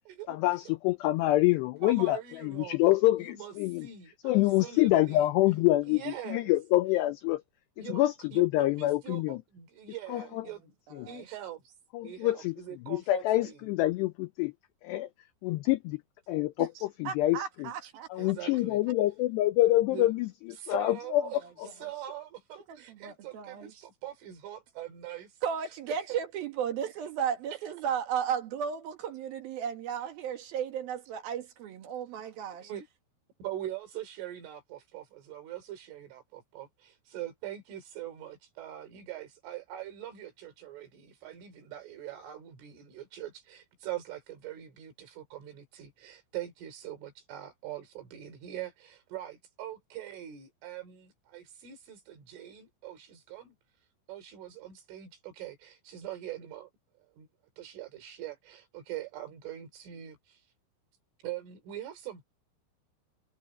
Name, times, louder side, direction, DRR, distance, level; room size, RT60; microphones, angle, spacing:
voice 1, 0.3-2.2 2.4-3.9 4.2-7.4 7.9-9.4 10.1-10.5 10.9-11.1 11.9-12.6 12.9-14.5 14.8-15.1 15.4-16.0 16.3-17.7 18.1-20.3 20.7-21.2 21.6-21.7, left 16 dB, 90° left, 2.4 m, -26 dB
voice 2, 1.8-2.8 3.2-4.3 4.6-5.3 5.9-6.5 7.8-8.0 8.3-10.6 11.1-11.7 12.0-13.6 18.2-18.8 19.9-20.1 20.6-21.4 21.8-25.3 32.6-32.9 33.4-53.5 54.1-56.7 57.2-57.3 57.6-60.4 61.2-62.3, right 12 dB, 75° right, 6.0 m, -42 dB
voice 3, 10.9-11.3 16.6-18.3 22.6-23.8 25.4-32.7, right 8 dB, 60° right, 3.0 m, -35 dB
omnidirectional pair, 5.7 m